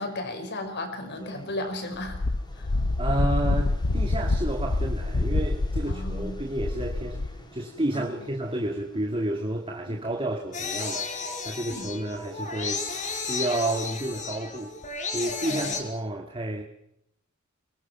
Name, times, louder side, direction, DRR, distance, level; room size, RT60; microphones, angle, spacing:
voice 1, 0.0-2.2 2.5-2.7 5.9-6.4 7.9-8.1 9.9-10.0 11.7-11.9 15.5-15.8, left 1 dB, 55° left, 5.6 m, -35 dB
sound 1, 1.0-15.7, equal, 20° left, 5.3 m, -51 dB
Wind, 2.0-7.4, left 2 dB, 90° left, 0.9 m, -26 dB
voice 2, 3.0-7.3 7.5-14.7 15.1-16.6, right 1 dB, 25° right, 2.0 m, -31 dB
sound 2, 10.5-15.8, left 4 dB, 40° left, 4.6 m, -33 dB
23.5 x 20.5 x 6.0 m
head